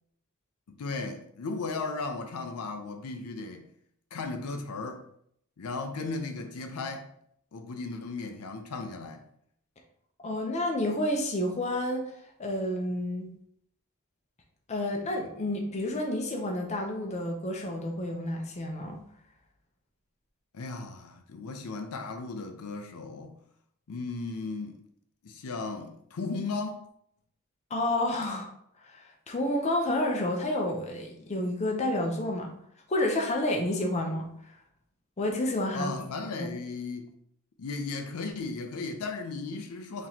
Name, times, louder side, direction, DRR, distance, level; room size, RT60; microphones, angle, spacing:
voice 1, 0.7-3.7 4.1-5.0 5.6-7.1 7.5-9.2 20.5-23.4 23.9-24.8 25.2-26.8 35.7-37.1 37.6-40.1, left 3 dB, 80° left, 0.5 m, -36 dB
voice 2, 10.2-12.1 12.4-13.3 14.7-19.0 27.7-28.5 28.8-32.5 32.9-34.3 35.2-35.9 36.4-36.5, left 1 dB, 30° left, 0.6 m, -30 dB
3.9 x 3.0 x 2.8 m
head